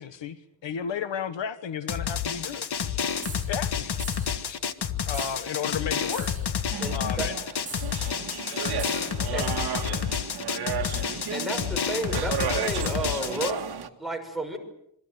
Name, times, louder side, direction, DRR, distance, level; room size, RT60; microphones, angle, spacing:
voice 1, 0.0-2.7 3.5-3.9 4.3-4.6 5.0-6.3 6.9-7.7, left 7 dB, 80° left, 11 dB, 1.4 m, -33 dB
Drum, 1.9-13.5, left 8 dB, 60° left, 1.6 m, -30 dB
sound 1, 3.2-3.5 4.0-4.4 5.1-5.4 6.1-6.5 7.7-7.9 8.8-9.1, right 3 dB, 15° right, 5.1 m, -40 dB
voice 2, 5.5-7.5 8.0-9.9, left 2 dB, 30° left, 7 dB, 6.3 m, -50 dB
sound 2, 6.7-13.9, right 8 dB, 55° right, 2.0 m, -34 dB
voice 3, 6.8-7.3 9.3-9.7 11.3-13.7 14.0-14.6, right 1 dB, ahead, 6 dB, 5.8 m, -32 dB
27.0 x 24.0 x 8.0 m, 0.78 s
wide cardioid pair, 150°, 44 cm